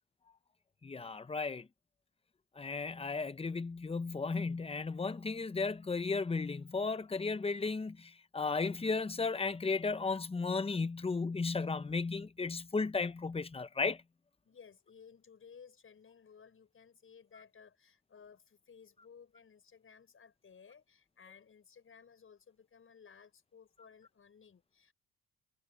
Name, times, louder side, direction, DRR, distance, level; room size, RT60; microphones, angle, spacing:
voice 1, 0.8-1.7 2.6-14.0, left 4 dB, 20° left, 0.9 m, -35 dB
voice 2, 14.4-24.9, left 6 dB, 45° left, 6.2 m, -58 dB
cardioid pair, 90°, 30 cm